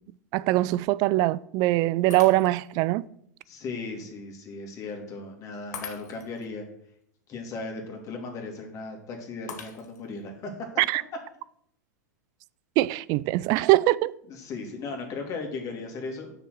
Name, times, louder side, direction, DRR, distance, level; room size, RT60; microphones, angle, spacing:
voice 1, 0.3-3.0 10.8-11.0 12.8-14.1, right 17 dB, 45° right, 0.4 m, -22 dB
Shatter, 2.1-2.8 3.4-3.5 5.7-6.5 9.5-10.2, left 7 dB, 70° left, 1.4 m, -42 dB
voice 2, 3.5-6.6 7.3-10.5 14.3-16.3, left 3 dB, 35° left, 2.4 m, -37 dB
7.0 x 6.0 x 6.4 m
hypercardioid pair, 100°, 9 cm